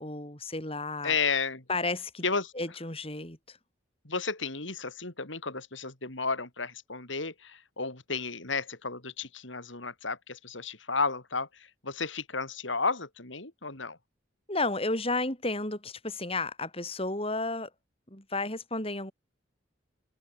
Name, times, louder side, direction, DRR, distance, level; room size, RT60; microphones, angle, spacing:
voice 1, 0.0-1.2 1.7-2.2 2.5-3.6 14.5-17.7 18.1-19.1, left 2 dB, 30° left, 7.7 m, -32 dB
voice 2, 1.0-1.6 2.2-2.5 4.0-14.0, left 4 dB, 75° left, 4.4 m, -33 dB
open air
head